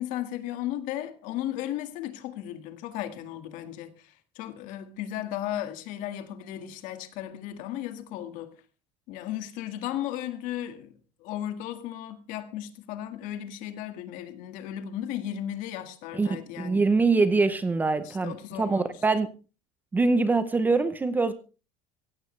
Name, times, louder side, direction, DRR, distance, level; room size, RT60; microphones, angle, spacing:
voice 1, 0.0-8.5 9.1-10.9 11.2-16.8 18.0-19.0, left 12 dB, 55° left, 1.9 m, -35 dB
voice 2, 16.1-19.3 19.9-21.3, right 3 dB, 10° right, 0.7 m, -24 dB
16.5 x 15.5 x 3.3 m
cardioid pair, 170°, 16 cm